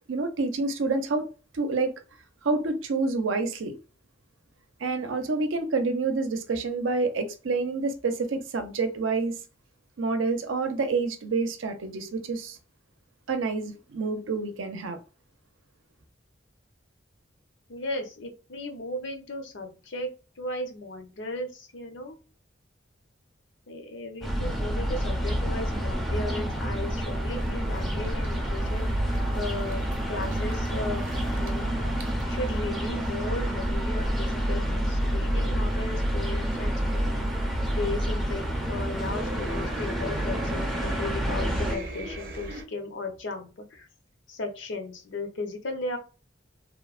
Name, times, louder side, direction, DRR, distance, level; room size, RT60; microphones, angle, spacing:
voice 1, 0.1-1.3 1.5-1.9 2.4-3.8 4.8-9.3 10.0-12.6 13.3-15.0, right 3 dB, 90° right, 0.6 m, -28 dB
voice 2, 17.7-20.1 20.4-22.2 23.7-29.1 29.3-29.8 30.1-43.9 44.3-46.0, left 2 dB, 70° left, 0.6 m, -36 dB
sound 1, 24.2-41.8, equal, ahead, 0.4 m, -28 dB
sound 2, 26.7-42.6, right 1 dB, 50° right, 0.6 m, -39 dB
3.0 x 2.1 x 2.3 m
head